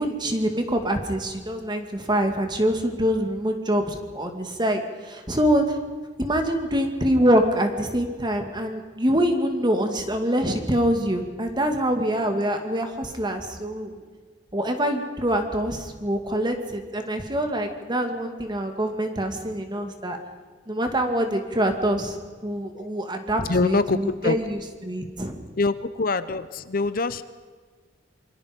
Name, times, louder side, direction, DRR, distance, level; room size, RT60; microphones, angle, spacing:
voice 1, 0.0-5.8 6.2-14.0 14.5-20.2 20.7-22.2 22.4-25.4, equal, 25° right, 5 dB, 2.4 m, -25 dB
voice 2, 23.5-24.0 24.2-24.3 25.6-27.2, left 3 dB, 50° left, 13 dB, 0.8 m, -24 dB
27.0 x 23.5 x 5.4 m, 1.5 s
head